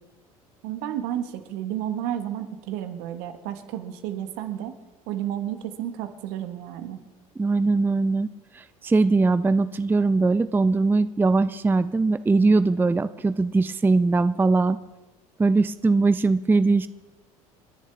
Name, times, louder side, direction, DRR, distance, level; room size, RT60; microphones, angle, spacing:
voice 1, 0.6-4.7 5.1-7.0, right 11 dB, 65° right, 8 dB, 1.5 m, -31 dB
voice 2, 7.4-8.3 8.5-14.8 15.4-16.9, right 3 dB, 10° right, 14 dB, 0.5 m, -21 dB
30.0 x 10.5 x 3.5 m, 1.2 s
hypercardioid pair, 65°, 18 cm